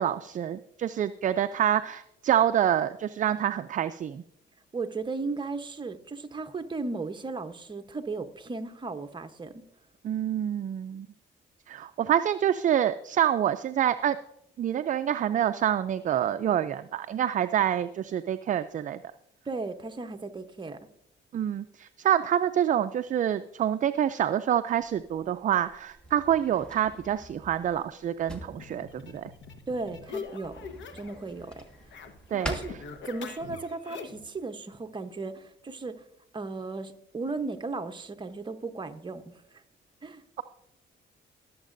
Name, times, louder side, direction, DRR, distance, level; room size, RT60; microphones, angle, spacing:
voice 1, 0.0-4.2 10.0-11.1 11.7-14.2 14.6-19.0 21.3-29.3 32.3-32.5, right 10 dB, 40° right, 11 dB, 0.4 m, -27 dB
voice 2, 4.7-9.6 19.5-20.8 29.7-30.6 30.9-31.6 32.4-32.7 33.1-36.0 36.3-39.4 40.0-40.2, right 3 dB, 25° right, 7 dB, 0.9 m, -35 dB
Drawer open or close, 24.8-33.6, right 1 dB, 5° left, 1.5 m, -45 dB
sound 1, 28.6-31.2 31.5-34.3, left 5 dB, 70° left, 1.2 m, -43 dB
19.0 x 7.3 x 2.6 m, 0.80 s
cardioid pair, 90°, 20 cm